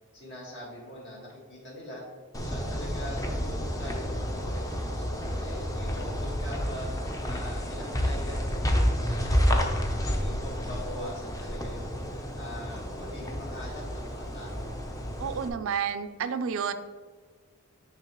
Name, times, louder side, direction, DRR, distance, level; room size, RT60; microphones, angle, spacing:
voice 1, 0.1-2.0 2.4-6.9 7.2-12.0 12.4-14.7, equal, 55° left, -4 dB, 1.6 m, -42 dB
sound 1, 2.3-15.5, equal, 15° left, 0.5 m, -30 dB
voice 2, 15.2-16.7, right 7 dB, 65° right, 11 dB, 0.4 m, -30 dB
9.6 x 3.3 x 3.0 m, 1.5 s
head